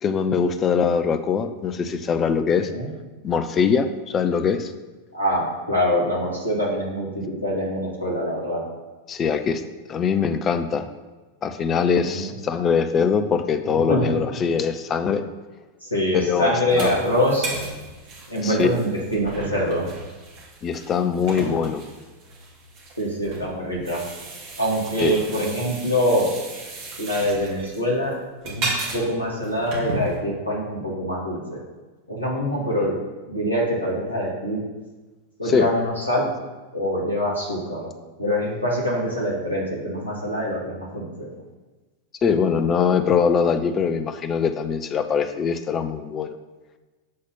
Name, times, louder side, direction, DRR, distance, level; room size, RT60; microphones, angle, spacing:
voice 1, 0.0-2.7 3.2-4.7 9.1-9.6 9.9-10.9 11.4-15.2 16.1-16.9 18.4-18.8 20.6-21.8 25.0-25.2 35.5-35.7 42.2-46.3, left 6 dB, 25° left, 10 dB, 0.6 m, -22 dB
voice 2, 5.1-8.6 12.0-12.3 13.7-14.2 15.8-17.5 18.3-19.9 23.0-24.0 24.6-26.3 27.0-28.1 28.4-31.6 32.1-32.9 33.3-34.6 35.4-36.3 36.7-37.9 38.2-41.3, equal, 90° right, -6 dB, 2.5 m, -24 dB
sound 1, 16.7-30.2, right 2 dB, 40° right, 2.0 m, -35 dB
7.4 x 4.1 x 6.0 m, 1.2 s
figure-of-eight pair, 90°, 0 cm